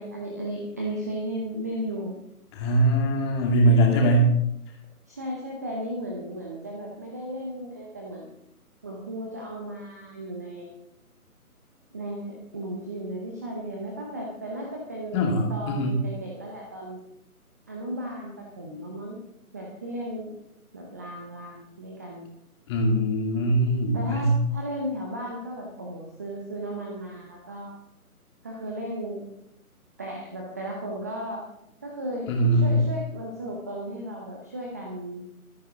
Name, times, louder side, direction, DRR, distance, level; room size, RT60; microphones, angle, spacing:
voice 1, 0.0-2.1 5.1-8.4 8.8-10.7 11.9-17.0 17.7-19.2 19.5-20.3 20.7-22.2 23.9-27.7 28.4-29.2 30.0-31.4 31.8-35.3, right 1 dB, 10° right, -1 dB, 0.8 m, -35 dB
voice 2, 2.6-4.3 15.1-15.9 22.7-24.3 32.3-32.9, right 1 dB, 20° left, 1 dB, 2.4 m, -21 dB
24.0 x 9.2 x 3.6 m, 0.78 s
figure-of-eight pair, 150°, 45 cm